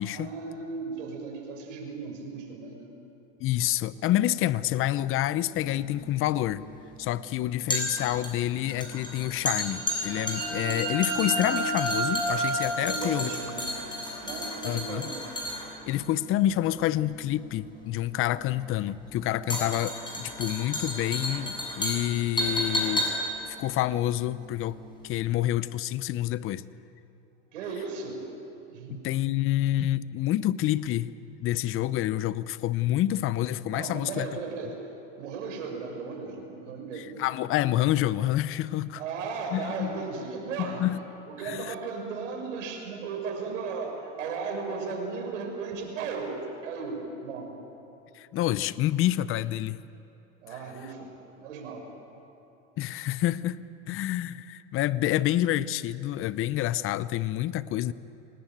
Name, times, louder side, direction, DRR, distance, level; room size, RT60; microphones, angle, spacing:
voice 1, 0.1-2.9 12.8-13.7 14.2-15.2 27.5-28.3 28.7-29.1 33.7-37.2 38.9-40.9 41.3-47.6 50.4-51.1 51.4-51.9, right 4 dB, 80° right, 2 dB, 6.3 m, -36 dB
voice 2, 3.4-6.6 7.0-13.3 14.6-15.1 15.9-23.1 23.5-24.8 25.0-26.7 28.9-31.1 31.4-34.3 37.0-39.0 39.5-39.9 40.6-41.0 41.4-41.7 48.1-49.8 52.8-57.9, left 13 dB, 35° left, 17 dB, 0.7 m, -28 dB
sound 1, 5.6-24.8 25.1-25.2, left 1 dB, 10° left, 7.4 m, -33 dB
sound 2, 9.6-15.1, right 2 dB, 25° right, 7.6 m, -32 dB
25.5 x 19.0 x 9.3 m, 2.8 s
supercardioid pair, 120°, 37 cm